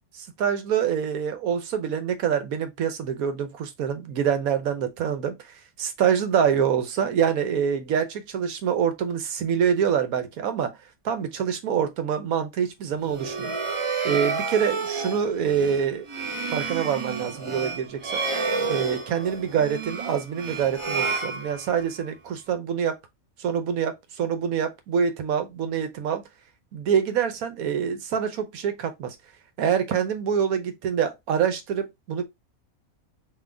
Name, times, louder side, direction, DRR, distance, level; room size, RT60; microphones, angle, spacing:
voice 1, 0.4-10.8 11.0-13.6 14.0-16.1 16.5-18.2 18.7-23.0 23.4-26.2 26.7-29.2 29.6-32.2, right 8 dB, 80° right, 1.2 m, -25 dB
sound 1, 13.0-22.0, right 4 dB, 30° right, 0.6 m, -30 dB
3.8 x 2.8 x 3.3 m
omnidirectional pair, 1.5 m